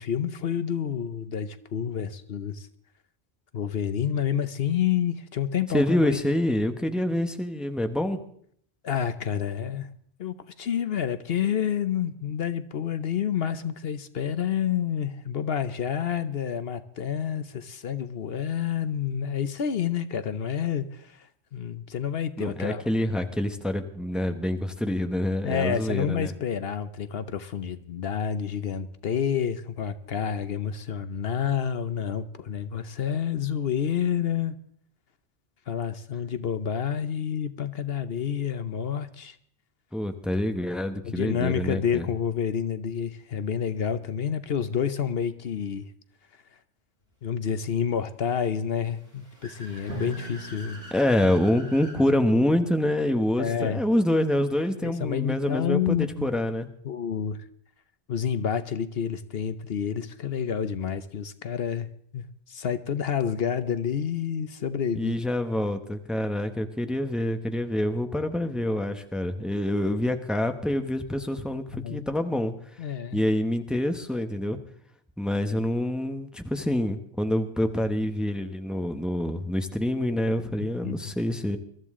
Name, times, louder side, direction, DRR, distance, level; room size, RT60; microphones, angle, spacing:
voice 1, 0.0-2.7 3.5-6.2 8.8-9.9 10.2-22.9 25.4-34.6 35.7-39.4 41.0-45.9 47.2-50.8 53.4-53.8 54.8-56.4 56.8-57.4 58.1-65.2 71.7-72.1 72.8-73.2 80.6-81.1, left 8 dB, 65° left, 12 dB, 1.0 m, -29 dB
voice 2, 5.7-8.2 22.4-26.3 39.9-42.0 50.9-56.7 64.9-72.5 73.1-74.6 75.2-81.6, left 1 dB, ahead, 7 dB, 1.0 m, -26 dB
Car / Accelerating revving vroom, 48.8-52.0, equal, 35° left, 5.3 m, -46 dB
Drum, 49.9-53.7, right 3 dB, 85° right, 6.2 m, -43 dB
22.5 x 13.0 x 3.7 m, 0.63 s
omnidirectional pair, 1.1 m